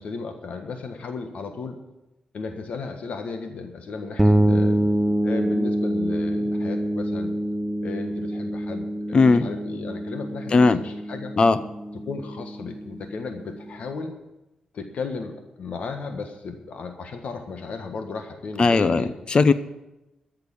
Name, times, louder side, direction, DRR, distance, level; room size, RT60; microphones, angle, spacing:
voice 1, 0.0-1.8 2.3-4.8 5.2-7.4 7.8-11.3 12.0-14.2 14.7-19.1, left 4 dB, 70° left, 6 dB, 1.5 m, -35 dB
sound 1, 4.2-13.8, right 1 dB, 10° right, 0.7 m, -26 dB
voice 2, 9.1-9.4 10.5-10.8 11.4-11.6 18.6-19.5, left 4 dB, 40° left, 13 dB, 0.7 m, -17 dB
13.5 x 6.7 x 9.8 m, 0.96 s
wide cardioid pair, 115°, 2 cm